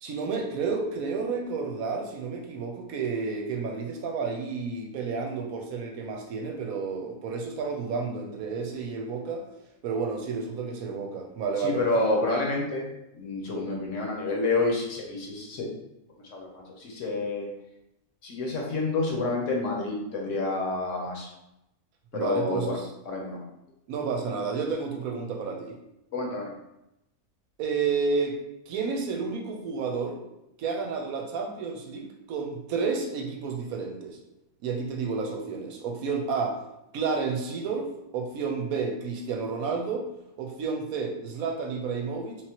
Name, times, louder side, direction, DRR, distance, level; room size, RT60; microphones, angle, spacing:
voice 1, 0.0-9.5 9.8-11.8 22.1-22.9 23.9-25.7 27.6-28.4 28.7-30.2 30.6-34.2 34.6-36.6 36.9-40.1 40.4-42.5, right 5 dB, 75° right, 2 dB, 1.0 m, -31 dB
voice 2, 11.6-12.8 13.1-15.7 16.3-17.5 18.2-21.3 22.1-22.8 23.1-23.4 26.1-26.5, left 2 dB, 60° left, -1 dB, 1.1 m, -28 dB
3.5 x 3.0 x 2.9 m, 0.87 s
omnidirectional pair, 1.6 m